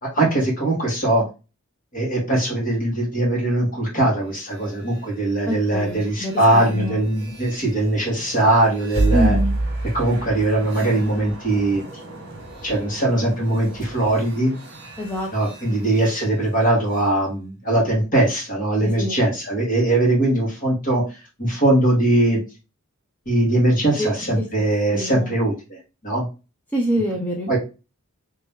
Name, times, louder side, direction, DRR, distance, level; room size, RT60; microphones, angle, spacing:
voice 1, 0.0-1.2 1.9-9.4 9.9-11.8 12.6-14.6 15.3-21.0 21.4-22.4 23.3-25.5 26.0-26.3 27.5-27.6, right 1 dB, 40° left, -2 dB, 1.9 m, -20 dB
sound 1, 4.3-17.1, right 2 dB, 50° right, 1.4 m, -31 dB
voice 2, 5.5-7.1 9.1-9.6 15.0-15.3 15.7-15.8 18.8-19.2 24.0-24.1 24.4-25.3 26.7-27.5, equal, 10° left, -2 dB, 0.6 m, -26 dB
3.3 x 2.9 x 3.6 m, 0.30 s
head